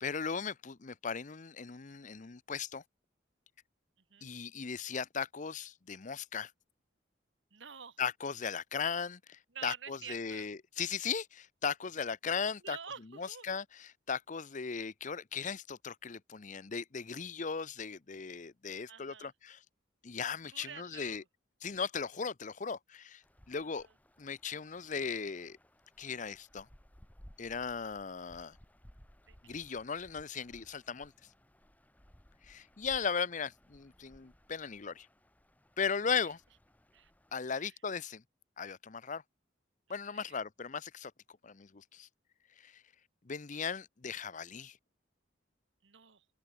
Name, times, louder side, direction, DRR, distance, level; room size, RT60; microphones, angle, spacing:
voice 1, 0.0-2.8 4.2-6.5 8.0-12.8 13.2-19.6 20.0-21.2 21.6-23.9 24.2-25.6 26.0-26.7 27.4-28.6 29.4-31.1 32.4-35.1 35.8-36.4 37.3-38.2 38.6-39.2 39.9-41.1 41.4-42.1 42.6-42.8 43.2-44.8, left 6 dB, 40° left, 0.7 m, -37 dB
voice 2, 7.5-8.0 9.5-10.5 12.6-13.5 18.9-19.3 20.5-21.2 23.6-23.9 29.3-29.8 36.9-37.1 37.6-37.8 40.1-40.4 45.8-46.2, right 7 dB, 75° right, 1.5 m, -49 dB
sound 1, 23.2-37.3, equal, 10° left, 1.7 m, -61 dB
head